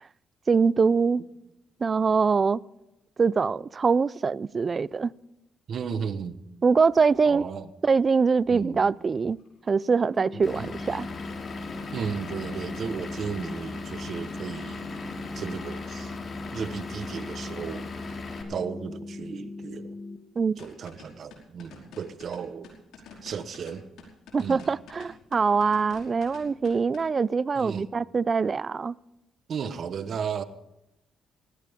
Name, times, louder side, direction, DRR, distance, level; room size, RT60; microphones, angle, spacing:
voice 1, 0.5-1.2 1.8-2.6 3.2-5.1 6.6-7.4 7.8-9.4 9.7-11.1 20.4-20.6 24.3-28.9, right 5 dB, 35° right, 0.4 m, -23 dB
voice 2, 5.7-6.4 7.2-7.7 8.5-8.8 10.6-10.7 11.9-15.0 15.3-16.1 16.5-17.9 18.5-20.0 20.6-22.7 23.2-23.8 24.4-24.7 27.5-27.9 29.5-30.4, right 6 dB, 55° right, 1.1 m, -34 dB
sound 1, 9.0-11.9 12.2-13.0 13.4-13.5 13.7-14.0 14.6-14.7 15.0-15.1 15.5-15.6 16.8-16.9 20.5-27.1, left 5 dB, 80° left, 5.1 m, -49 dB
sound 2, 10.2-20.2, left 3 dB, 15° left, 1.7 m, -40 dB
Vehicle / Engine, 10.4-18.4, left 3 dB, 45° left, 3.1 m, -38 dB
19.0 x 16.0 x 3.7 m
cardioid pair, 90°, 0 cm